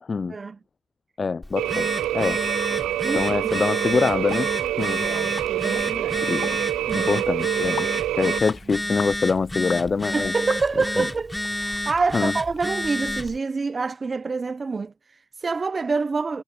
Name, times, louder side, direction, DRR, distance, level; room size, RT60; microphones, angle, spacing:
voice 1, 1.2-2.4 2.9-4.5 4.8-5.1 6.3-6.5 6.9-7.9 8.1-10.3 11.0-11.1 12.1-12.3, left 4 dB, 35° left, 0.4 m, -24 dB
Telephone, 1.4-13.4, left 1 dB, 10° left, 3.0 m, -30 dB
sound 1, 1.6-8.4, right 14 dB, 80° right, 0.4 m, -26 dB
voice 2, 3.0-3.6 5.0-6.4 6.9-7.2 10.0-16.4, right 4 dB, 30° right, 0.7 m, -27 dB
sound 2, 4.3-4.5 4.8-4.9 5.4-5.5 5.8-5.9 6.4-6.6 7.1-7.2 7.8-8.0 8.5-8.6 9.0-9.2 9.7-9.9 10.5-10.9 11.4-11.5 12.0-12.1 12.6-12.7, left 8 dB, 60° left, 1.3 m, -37 dB
cardioid pair, 90°, 0 cm